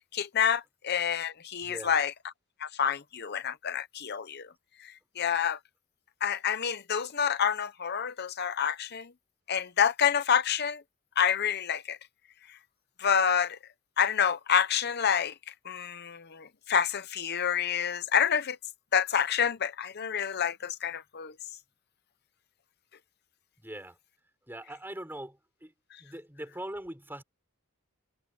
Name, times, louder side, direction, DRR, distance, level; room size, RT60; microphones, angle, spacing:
voice 1, 0.1-2.1 2.6-4.5 4.8-5.6 6.2-9.1 9.5-10.8 11.2-12.0 12.5-12.6 13.0-13.6 14.0-18.6 18.9-21.3, left 7 dB, 50° left, 0.7 m, -28 dB
voice 2, 1.6-1.9 23.6-24.0 24.5-25.7 26.0-27.2, right 1 dB, 10° right, 5.8 m, -41 dB
head